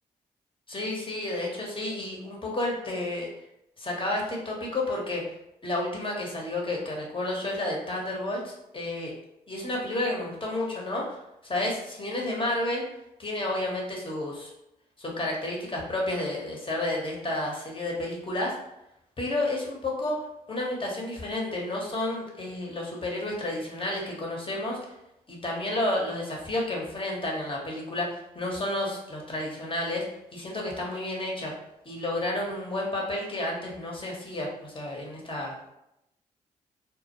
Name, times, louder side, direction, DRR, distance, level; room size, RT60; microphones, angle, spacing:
voice 1, 0.7-3.3 3.8-5.2 5.6-9.1 9.5-11.2 11.4-12.8 13.2-14.5 15.0-18.6 19.2-20.2 20.5-24.8 25.3-30.1 30.3-31.5 31.8-35.5, left 1 dB, 30° left, -2 dB, 0.9 m, -31 dB
2.1 x 2.0 x 2.9 m, 0.83 s
hypercardioid pair, 45°, 17 cm